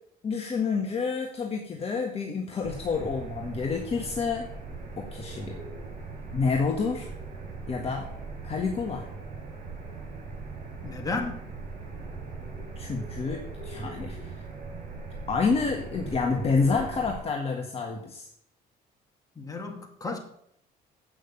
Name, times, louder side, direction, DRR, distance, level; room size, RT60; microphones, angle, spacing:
voice 1, 0.2-4.5 5.0-5.6 6.3-7.1 7.7-8.1 8.4-9.1 12.8-14.3 15.3-18.3, left 4 dB, 35° left, 1.4 m, -28 dB
sound 1, 2.6-17.2, right 4 dB, 50° right, 4.9 m, -40 dB
voice 2, 10.8-11.4 19.4-20.2, left 3 dB, 20° left, 2.1 m, -33 dB
8.4 x 6.2 x 7.0 m
cardioid pair, 110°, 17 cm